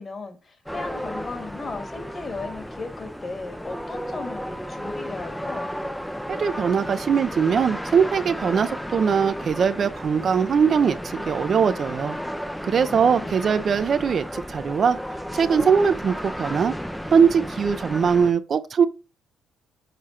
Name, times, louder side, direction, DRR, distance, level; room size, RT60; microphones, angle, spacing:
voice 1, 0.0-5.7 12.8-13.5, left 3 dB, 40° left, 1.9 m, -36 dB
sound 1, 0.7-18.3, equal, 5° left, 0.5 m, -33 dB
voice 2, 6.3-12.2 12.6-15.0 15.3-16.7 17.1-18.9, right 6 dB, 50° right, 0.6 m, -21 dB
6.7 x 3.6 x 4.3 m
cardioid pair, 90°, 0 cm